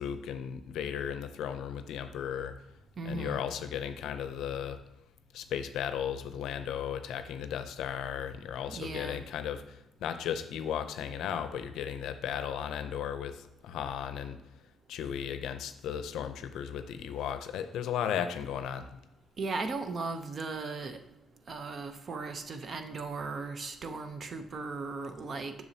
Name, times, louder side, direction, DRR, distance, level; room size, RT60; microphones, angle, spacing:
voice 1, 0.0-2.5 3.0-4.8 5.3-14.4 14.9-19.0, left 8 dB, 80° left, 10 dB, 0.5 m, -35 dB
voice 2, 3.0-3.4 8.7-9.2 19.4-21.0 21.5-25.5, right 3 dB, 45° right, 8 dB, 0.7 m, -37 dB
7.0 x 6.2 x 2.8 m, 0.90 s
cardioid pair, 90°, 0 cm